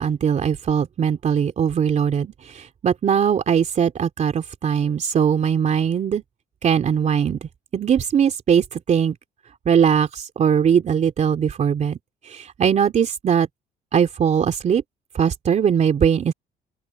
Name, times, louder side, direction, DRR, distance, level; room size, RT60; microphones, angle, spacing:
voice 1, 0.0-6.2 6.6-9.1 9.6-12.0 12.3-13.5 13.9-14.8 15.1-16.3, right 7 dB, 45° right, 3.0 m, -20 dB
open air
cardioid pair, 110°, 17 cm